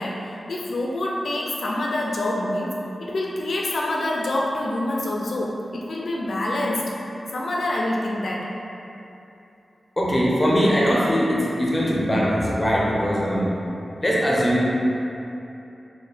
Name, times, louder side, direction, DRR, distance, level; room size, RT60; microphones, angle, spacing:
voice 1, 0.0-2.7 3.0-6.8 7.3-8.5, left 1 dB, 65° left, -2 dB, 0.3 m, -26 dB
voice 2, 10.0-13.6 14.0-14.7, equal, 15° left, -4 dB, 0.5 m, -21 dB
4.0 x 2.2 x 3.3 m, 2.8 s
wide cardioid pair, 150°, 0 cm